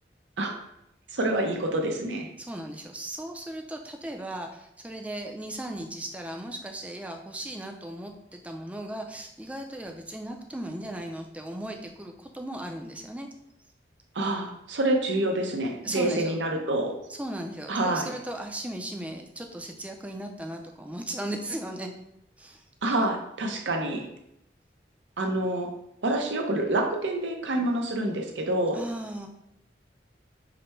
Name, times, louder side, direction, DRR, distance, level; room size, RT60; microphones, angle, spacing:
voice 1, 1.1-2.3 14.1-16.9 17.7-18.1 22.8-24.1 25.2-25.7 26.0-28.8, right 1 dB, 90° right, 3 dB, 0.7 m, -27 dB
voice 2, 2.4-13.3 15.8-16.4 17.1-21.9 22.4-22.6 28.7-29.3, right 1 dB, 10° right, 2 dB, 0.4 m, -37 dB
5.0 x 2.1 x 4.4 m, 0.80 s
head